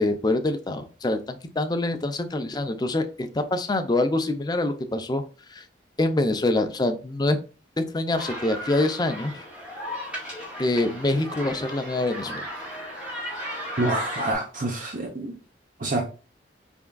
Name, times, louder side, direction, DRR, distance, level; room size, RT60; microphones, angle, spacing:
voice 1, 0.0-5.2 5.6-5.7 6.0-7.4 7.8-9.3 10.6-12.4, left 2 dB, 25° left, 0.5 m, -25 dB
sound 1, 8.1-14.3, equal, 10° right, 1.6 m, -35 dB
voice 2, 13.8-15.3 15.8-16.1, right 2 dB, 50° right, 0.7 m, -27 dB
4.2 x 3.5 x 2.2 m
head